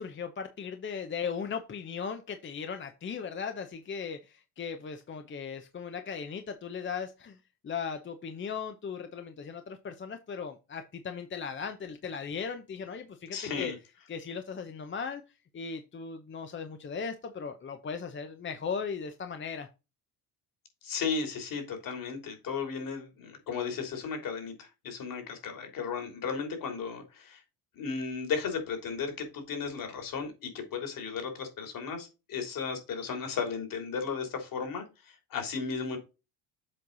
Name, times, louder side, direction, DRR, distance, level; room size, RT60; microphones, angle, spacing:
voice 1, 0.0-7.4 7.6-13.7 14.1-19.7, left 6 dB, 30° left, 7 dB, 0.9 m, -37 dB
voice 2, 13.3-13.7 20.8-27.4 27.7-36.0, left 5 dB, 55° left, 5 dB, 3.3 m, -35 dB
7.6 x 4.6 x 4.0 m, 0.28 s
cardioid pair, 100°, 39 cm